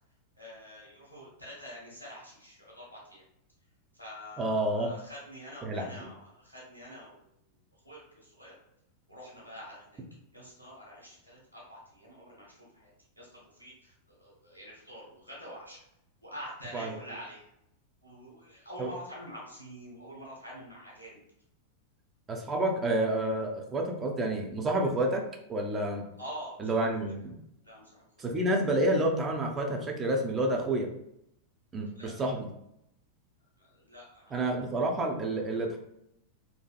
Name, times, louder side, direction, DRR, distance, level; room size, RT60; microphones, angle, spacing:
voice 1, 0.4-3.2 3.9-7.2 7.7-8.6 9.1-10.0 10.3-15.8 16.2-17.5 18.0-21.2 26.2-27.0 27.6-28.1 31.9-32.2 33.6-34.6, equal, 85° left, -5 dB, 0.7 m, -46 dB
voice 2, 4.4-4.9 5.6-5.8 16.7-16.9 18.8-18.9 22.3-25.2 25.5-26.0 26.6-27.3 28.2-30.9 31.7-32.5 34.3-35.8, right 1 dB, 20° right, 2 dB, 0.5 m, -29 dB
2.7 x 2.5 x 2.3 m, 0.79 s
figure-of-eight pair, 90°, 0 cm